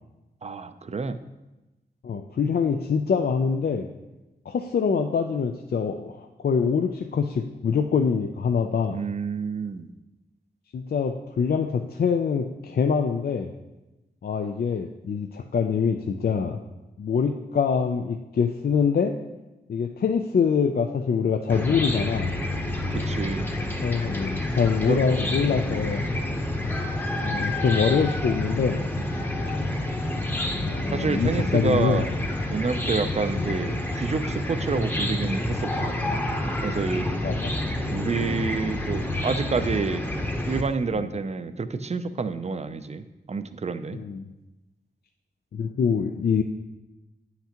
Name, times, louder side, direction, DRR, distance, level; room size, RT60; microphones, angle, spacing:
voice 1, 0.4-1.2 8.9-9.9 22.9-23.5 24.9-25.0 30.9-32.1 32.5-36.0 36.6-37.2 37.9-40.0 40.5-44.0, right 4 dB, 35° right, 11 dB, 0.4 m, -28 dB
voice 2, 2.0-3.9 4.5-9.0 10.7-13.5 14.2-16.6 17.0-19.1 19.7-22.3 23.8-26.0 27.2-28.9 30.6-32.1 33.3-33.5 37.2-37.5 43.9-44.3 45.5-46.4, left 6 dB, 60° left, 5 dB, 0.4 m, -24 dB
Chicken rooster / Cricket, 21.5-40.6, left 1 dB, 10° left, 0.8 m, -28 dB
9.1 x 5.8 x 2.9 m, 1.0 s
wide cardioid pair, 75°, 18 cm